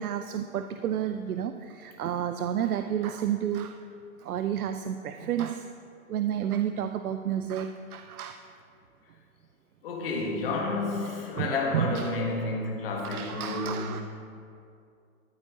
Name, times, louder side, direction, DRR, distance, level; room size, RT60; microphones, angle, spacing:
voice 1, 0.0-3.8 4.2-5.7 6.1-8.4 11.4-12.1 12.9-14.0, right 9 dB, 80° right, 8 dB, 0.6 m, -31 dB
voice 2, 9.8-14.0, left 3 dB, 40° left, 0 dB, 1.6 m, -30 dB
12.5 x 8.0 x 3.7 m, 2.5 s
hypercardioid pair, 160°, 44 cm